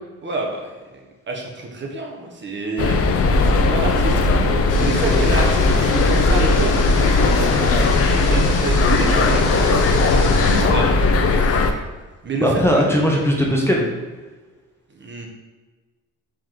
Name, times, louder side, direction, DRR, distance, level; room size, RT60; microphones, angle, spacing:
voice 1, 0.2-3.0 3.4-4.3 4.8-6.8 7.0-9.5 10.1-11.6 12.2-12.8 14.9-15.3, right 3 dB, 40° right, 0 dB, 0.9 m, -28 dB
sound 1, 2.8-11.7, left 3 dB, 50° left, 0.5 m, -17 dB
sound 2, 4.7-10.7, left 1 dB, 80° left, 1.0 m, -27 dB
voice 2, 12.4-13.9, equal, 10° left, -2 dB, 0.7 m, -18 dB
4.7 x 3.0 x 3.8 m, 1.3 s
cardioid pair, 90°, 30 cm